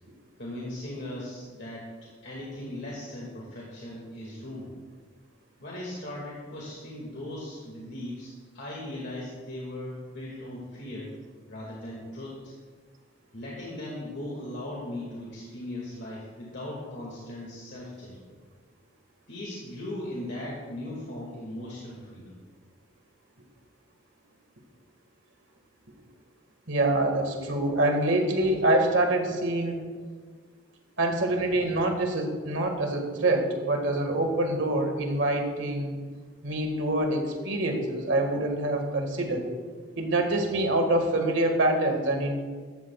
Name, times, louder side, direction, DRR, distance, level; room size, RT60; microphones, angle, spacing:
voice 1, 0.4-1.9 2.2-4.7 5.6-11.1 11.5-12.5 13.3-18.2 19.3-22.4, left 1 dB, 60° left, -4 dB, 2.2 m, -38 dB
voice 2, 26.7-29.9 31.0-36.0 36.4-39.5 40.0-42.4, right 1 dB, 70° right, 4 dB, 1.8 m, -25 dB
15.0 x 12.5 x 2.4 m, 1.5 s
head